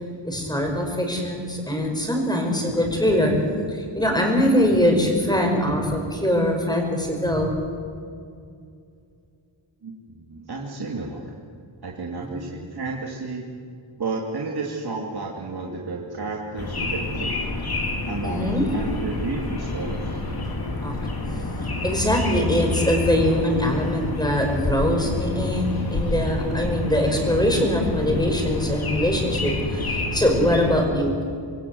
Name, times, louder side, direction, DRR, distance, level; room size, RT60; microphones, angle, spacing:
voice 1, 0.2-3.4 3.7-7.5 12.2-12.5 18.2-18.7 20.8-21.0 21.8-31.2, left 1 dB, 10° left, 2 dB, 5.4 m, -22 dB
voice 2, 9.8-11.4 11.8-13.5 14.0-17.3 18.1-20.2, right 3 dB, 50° right, -1 dB, 2.7 m, -32 dB
sound 1, 16.6-30.9, left 2 dB, 50° left, 3.9 m, -28 dB
27.0 x 22.0 x 7.9 m, 2.3 s
wide cardioid pair, 145°, 47 cm